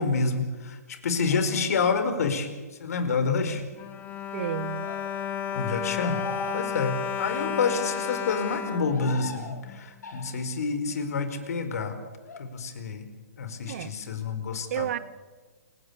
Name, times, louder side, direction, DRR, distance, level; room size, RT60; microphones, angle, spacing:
voice 1, 0.0-2.5 2.8-3.6 5.5-6.2 6.5-11.9 12.4-13.0 13.4-14.9, left 4 dB, 65° left, 9 dB, 4.8 m, -28 dB
sound 1, 1.3-1.8 4.7-5.1 6.0-7.1 8.7-9.6 10.0-10.6 12.2-12.5, left 2 dB, 85° left, 5.1 m, -40 dB
Bowed string instrument, 3.5-9.8 10.5-10.6 10.9-11.0, left 8 dB, 20° left, 2.4 m, -33 dB
voice 2, 4.3-4.9 13.7-14.0 14.7-15.0, right 11 dB, 55° right, 14 dB, 1.6 m, -31 dB
28.5 x 18.0 x 8.4 m, 1.3 s
hypercardioid pair, 135°, 9 cm